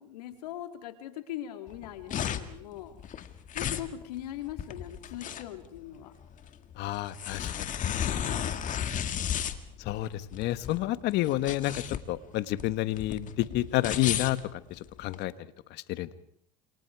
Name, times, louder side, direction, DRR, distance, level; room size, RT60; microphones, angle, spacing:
voice 1, 0.0-3.0 3.5-6.1 7.8-8.4, left 12 dB, 85° left, 7 dB, 3.1 m, -41 dB
sound 1, 1.7-15.2, left 9 dB, 40° left, 2.0 m, -34 dB
voice 2, 6.8-7.7 9.8-14.6 15.0-15.3 15.7-16.1, left 15 dB, 60° left, 13 dB, 1.5 m, -30 dB
29.0 x 28.0 x 4.8 m, 0.65 s
supercardioid pair, 100°, 20 cm